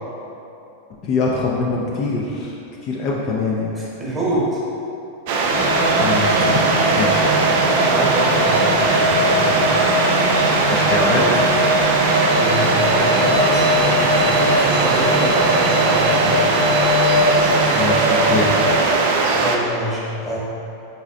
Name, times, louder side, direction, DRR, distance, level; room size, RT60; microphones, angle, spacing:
voice 1, 1.0-2.5 2.8-3.7 5.9-6.6 6.9-7.3 10.7-11.5 17.7-18.8, left 3 dB, 35° left, -3 dB, 0.4 m, -23 dB
voice 2, 3.7-4.6 7.2-9.7 11.1-11.5 12.3-16.8 19.3-20.4, right 1 dB, 10° right, -7 dB, 1.1 m, -26 dB
sound 1, 5.3-19.6, right 3 dB, 50° right, 0.4 m, -19 dB
sound 2, 5.5-18.8, equal, 90° right, 0.7 m, -21 dB
4.1 x 4.0 x 2.4 m, 2.9 s
figure-of-eight pair, 90°, 0 cm